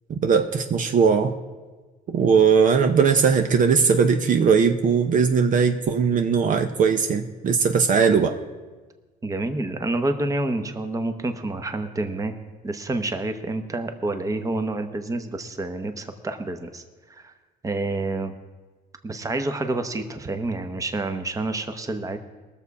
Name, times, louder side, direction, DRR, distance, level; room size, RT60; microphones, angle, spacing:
voice 1, 0.2-1.4 2.1-8.4, right 6 dB, 50° right, 6 dB, 0.8 m, -19 dB
voice 2, 9.2-12.4 12.6-17.3 17.6-18.3 19.0-22.2, right 2 dB, 20° right, 8 dB, 1.0 m, -28 dB
19.5 x 7.1 x 4.8 m, 1.3 s
cardioid pair, 110°, 17 cm